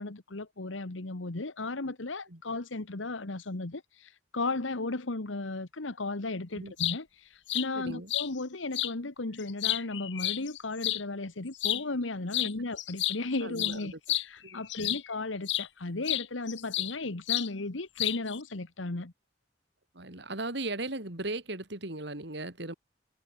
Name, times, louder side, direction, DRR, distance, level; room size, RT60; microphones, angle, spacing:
voice 1, 0.0-19.1, left 2 dB, 90° left, 1.5 m, -35 dB
sound 1, 6.6-7.0 7.5-7.7 8.1-8.3 8.7-8.9 9.4-11.0 11.6-11.8 12.3-12.5 12.8-15.1 15.5-15.7 16.1-17.0 17.3-17.5 18.0-18.4, left 15 dB, 70° left, 1.6 m, -31 dB
voice 2, 7.7-8.1 13.4-14.0 14.4-15.0 19.9-22.7, right 2 dB, 60° right, 3.3 m, -37 dB
head